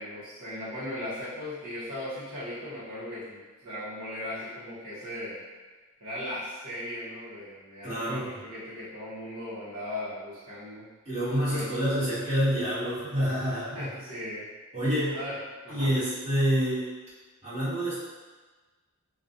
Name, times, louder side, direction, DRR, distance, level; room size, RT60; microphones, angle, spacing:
voice 1, 0.0-5.4 6.0-10.9 11.5-11.7 13.7-14.5 15.1-15.4 15.6-15.9, left 1 dB, 70° right, -12 dB, 1.0 m, -37 dB
voice 2, 7.8-8.3 11.0-13.9 14.7-15.2 15.7-16.9 17.4-18.0, equal, 30° right, -15 dB, 1.2 m, -27 dB
2.3 x 2.2 x 2.6 m, 1.3 s
head